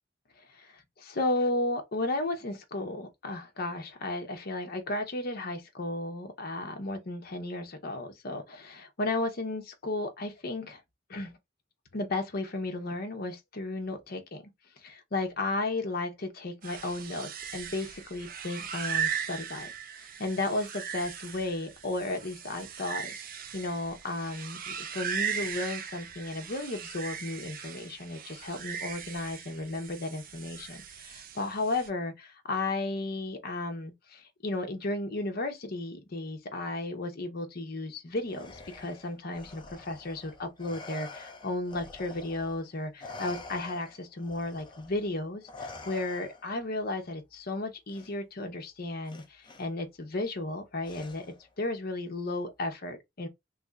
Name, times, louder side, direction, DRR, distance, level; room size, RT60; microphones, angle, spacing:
voice 1, 0.5-10.8 11.1-11.3 11.9-14.4 14.8-19.7 20.2-23.1 23.5-51.3 51.6-53.3, left 2 dB, 55° left, 0.9 m, -34 dB
sound 1, 16.6-31.9, right 7 dB, 50° right, 0.5 m, -38 dB
Respiratory sounds, 38.3-42.6 43.0-46.6 47.9-48.1 49.1-49.6 50.8-51.5, left 3 dB, 25° left, 0.7 m, -46 dB
3.2 x 2.6 x 3.5 m
head